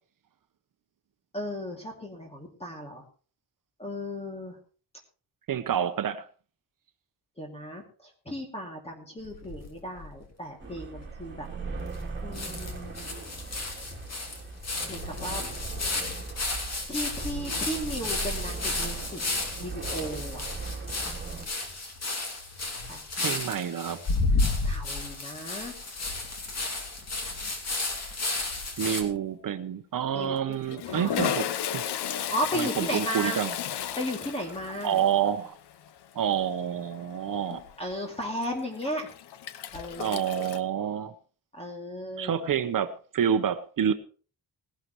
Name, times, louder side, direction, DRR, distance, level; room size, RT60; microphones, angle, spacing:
voice 1, 1.3-3.0 3.8-4.6 7.4-11.5 12.2-13.1 14.9-15.4 16.9-19.2 19.6-20.4 22.9-23.4 24.6-25.7 30.1-31.4 32.1-33.4 34.0-35.0 37.8-39.1 39.7-40.2 41.5-42.4, equal, 15° left, 2.6 m, -35 dB
voice 2, 5.5-6.3 23.2-24.0 28.8-31.5 31.7-31.8 32.5-33.5 34.8-35.6 36.1-37.6 40.0-41.1 42.2-43.9, right 9 dB, 55° right, 0.9 m, -28 dB
sound 1, 9.2-10.2 10.7-10.8 11.0-11.1 11.9-12.0 12.3-29.0, left 3 dB, 40° left, 2.6 m, -32 dB
sound 2, 10.6-21.5, right 4 dB, 30° right, 3.0 m, -39 dB
Toilet flush, 28.4-28.8 29.0-29.2 30.1-40.6, left 9 dB, 85° left, 0.9 m, -35 dB
19.5 x 11.5 x 3.1 m
wide cardioid pair, 150°, 39 cm